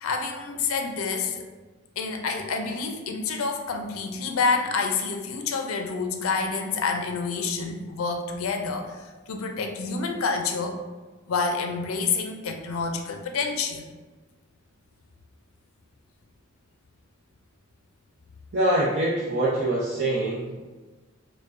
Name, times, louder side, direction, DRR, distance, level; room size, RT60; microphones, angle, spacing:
voice 1, 0.0-1.4 2.0-9.0 9.3-10.8 11.3-13.8, left 4 dB, 85° left, 4 dB, 0.5 m, -28 dB
voice 2, 18.5-20.6, right 1 dB, 60° right, -7 dB, 0.6 m, -24 dB
4.8 x 2.2 x 2.5 m, 1.2 s
head